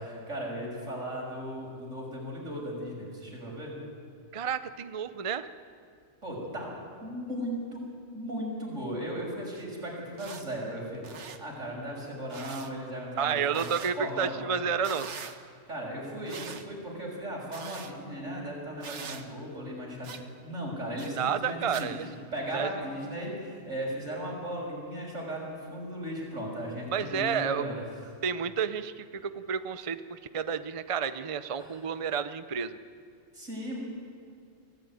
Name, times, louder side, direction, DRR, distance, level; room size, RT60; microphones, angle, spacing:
voice 1, 0.0-3.8 6.2-6.7 7.0-7.8 8.1-13.7 14.0-14.4 15.7-21.9 22.3-27.8 31.6-31.8 33.3-33.8, equal, 85° right, -2 dB, 6.5 m, -36 dB
voice 2, 4.3-5.5 13.2-15.1 21.2-22.1 22.5-22.7 26.9-27.7 28.2-32.8, right 7 dB, 35° right, 12 dB, 0.6 m, -30 dB
sound 1, 9.5-9.6 10.1-10.4 10.9-11.4 12.3-12.7 13.5-13.9 14.8-15.4 16.3-16.7 17.5-17.9 18.8-19.2 20.0-20.2 21.0-21.1 21.7-21.9, right 6 dB, 70° right, 1.5 m, -42 dB
24.0 x 15.5 x 9.5 m, 2.4 s
omnidirectional pair, 1.3 m